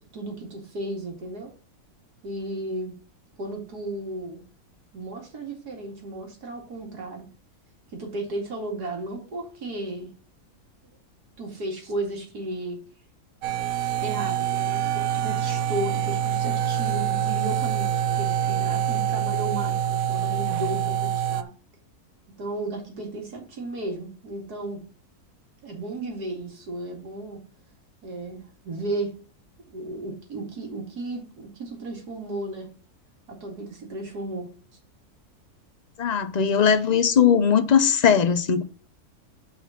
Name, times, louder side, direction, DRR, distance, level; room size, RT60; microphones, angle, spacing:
voice 1, 0.1-1.5 2.2-2.9 3.4-4.4 4.9-7.3 7.9-10.1 11.4-12.8 14.0-21.5 22.4-24.8 25.6-27.4 28.0-29.1 29.7-32.7 33.3-34.5, right 2 dB, 85° right, 2.9 m, -34 dB
sound 1, 13.4-21.4, right 9 dB, 70° right, 1.1 m, -25 dB
voice 2, 36.0-38.6, left 7 dB, 50° left, 0.5 m, -19 dB
6.1 x 5.5 x 5.7 m
omnidirectional pair, 1.6 m